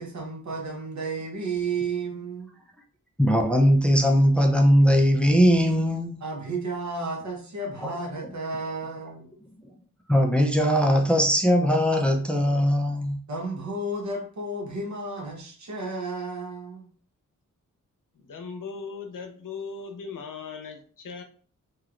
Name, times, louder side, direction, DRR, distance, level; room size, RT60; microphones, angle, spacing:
voice 1, 0.0-2.5 6.2-9.3 13.3-16.9, right 3 dB, 60° right, 0.9 m, -32 dB
voice 2, 3.2-6.2 7.8-8.0 10.1-13.2, equal, 5° left, 0.4 m, -20 dB
voice 3, 18.1-21.2, left 5 dB, 75° left, 0.7 m, -38 dB
3.0 x 2.9 x 2.4 m
wide cardioid pair, 140°, 32 cm